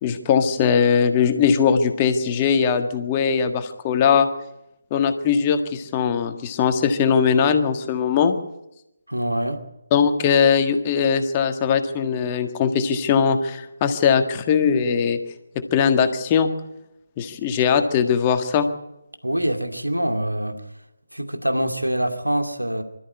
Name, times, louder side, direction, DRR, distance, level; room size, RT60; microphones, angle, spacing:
voice 1, 0.0-4.3 4.9-8.3 9.9-15.2 15.5-16.5 17.2-18.7, left 6 dB, 20° left, 7 dB, 1.7 m, -20 dB
voice 2, 9.1-9.6 19.2-20.6 21.1-22.8, right 1 dB, 85° right, 6 dB, 2.4 m, -24 dB
25.0 x 13.5 x 9.7 m, 0.87 s
figure-of-eight pair, 150°, 0 cm